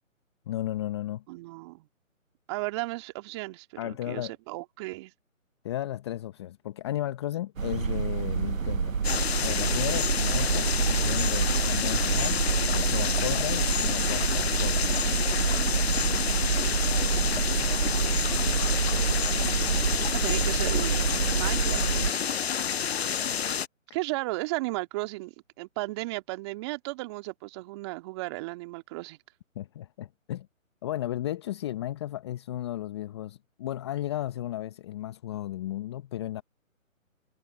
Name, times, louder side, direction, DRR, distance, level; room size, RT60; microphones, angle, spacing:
voice 1, 0.5-1.2 3.8-4.3 5.6-8.9 9.4-14.9 29.5-30.5 30.8-36.4, left 13 dB, 20° left, 1.1 m, -34 dB
voice 2, 1.3-1.9 2.5-5.1 20.1-22.2 23.9-29.2, right 22 dB, 20° right, 2.1 m, -35 dB
sound 1, 7.6-22.1, right 6 dB, 75° right, 1.1 m, -27 dB
sound 2, 9.0-23.7, left 8 dB, 50° left, 0.6 m, -29 dB
sound 3, 14.8-20.4, left 4 dB, 5° left, 2.7 m, -54 dB
figure-of-eight pair, 150°, 41 cm